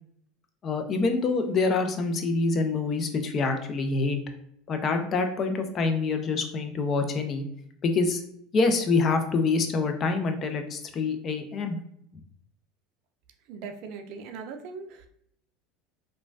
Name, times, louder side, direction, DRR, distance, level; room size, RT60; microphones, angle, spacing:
voice 1, 0.6-4.2 4.7-7.4 7.8-8.2 8.5-11.8, left 4 dB, 40° left, 6 dB, 0.5 m, -26 dB
voice 2, 13.5-15.1, right 5 dB, 60° right, 6 dB, 0.4 m, -39 dB
3.0 x 2.2 x 2.5 m, 0.70 s
hypercardioid pair, 90°, 0 cm